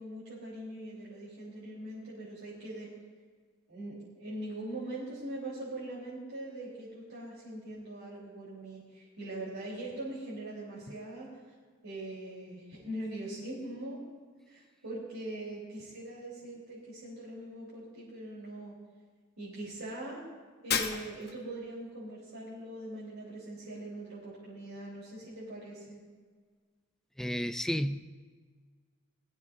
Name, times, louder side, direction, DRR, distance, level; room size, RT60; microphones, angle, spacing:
voice 1, 0.0-2.9 3.7-11.4 11.8-14.0 14.5-18.7 19.4-20.2 20.6-26.0, right 1 dB, 80° right, -8 dB, 3.9 m, -42 dB
Shatter, 20.7-21.5, left 7 dB, 50° left, 1.0 m, -32 dB
voice 2, 27.2-28.1, equal, ahead, 9 dB, 0.4 m, -32 dB
20.0 x 15.0 x 2.7 m, 1.6 s
head